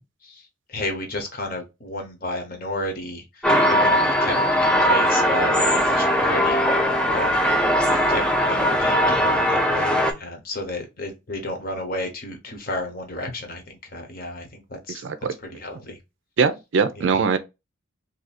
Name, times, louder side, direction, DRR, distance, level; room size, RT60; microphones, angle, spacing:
voice 1, 0.2-6.6 7.1-7.5 7.9-15.0 15.4-16.0 17.0-17.1, left 1 dB, 45° left, 0.9 m, -32 dB
sound 1, 3.4-10.1, equal, 5° left, 0.3 m, -20 dB
voice 2, 15.0-15.3 16.4-17.4, right 5 dB, 65° right, 0.4 m, -21 dB
2.7 x 2.5 x 4.0 m
head